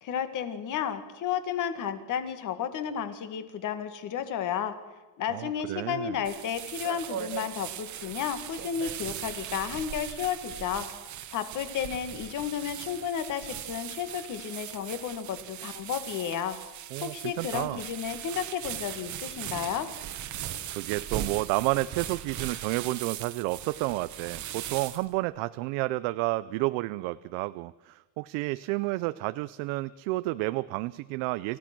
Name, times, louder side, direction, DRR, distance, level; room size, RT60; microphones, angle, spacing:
voice 1, 0.0-4.7 5.2-10.9 11.3-16.6 17.0-19.9, left 8 dB, 40° left, 10 dB, 2.0 m, -32 dB
voice 2, 5.3-6.2 16.9-17.8 20.3-20.4 20.7-31.6, right 20 dB, 85° right, 14 dB, 0.7 m, -31 dB
sound 1, 6.2-25.2, right 11 dB, 40° right, 1.3 m, -39 dB
29.0 x 15.0 x 6.1 m, 1.2 s
cardioid pair, 170°, 45 cm